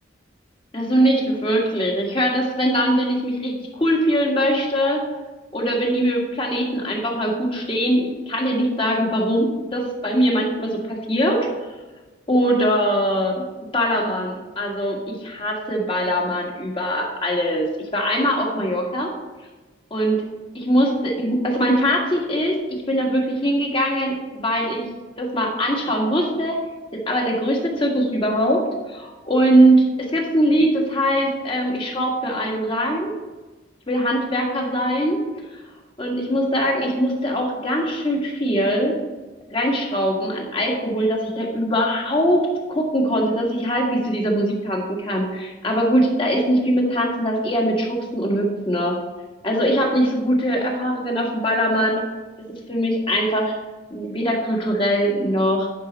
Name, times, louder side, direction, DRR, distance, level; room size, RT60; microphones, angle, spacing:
voice 1, 0.7-5.0 5.5-11.5 12.3-13.4 13.7-19.1 19.9-20.2 20.5-24.9 25.2-26.6 26.9-33.1 33.9-35.2 36.0-39.0 39.5-49.0 49.4-52.1 52.5-53.6 53.9-55.7, equal, 30° left, 0 dB, 1.6 m, -21 dB
10.0 x 5.6 x 4.1 m, 1.2 s
head